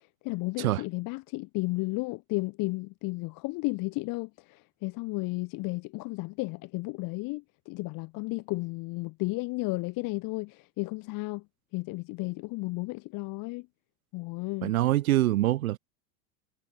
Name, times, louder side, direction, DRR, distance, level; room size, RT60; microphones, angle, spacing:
voice 1, 0.0-11.4 11.7-13.7 14.1-14.7, left 24 dB, 50° left, 2.7 m, -33 dB
voice 2, 14.6-15.8, right 15 dB, 75° right, 2.5 m, -24 dB
hypercardioid pair, 105°, 42 cm